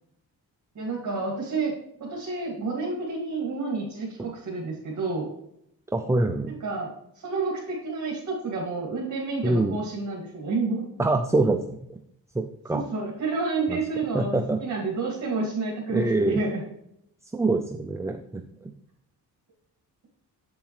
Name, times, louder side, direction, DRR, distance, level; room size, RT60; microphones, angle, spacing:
voice 1, 0.7-1.7 2.0-5.3 6.5-6.9 7.2-10.9 12.7-16.6, right 3 dB, 50° right, -3 dB, 2.2 m, -29 dB
voice 2, 5.9-6.5 9.4-9.8 11.0-12.0 12.3-12.9 13.7-13.8 14.1-14.6 15.9-16.4 17.3-18.7, right 2 dB, 10° right, 5 dB, 0.3 m, -25 dB
8.3 x 7.1 x 3.2 m, 0.77 s
wide cardioid pair, 145°, 38 cm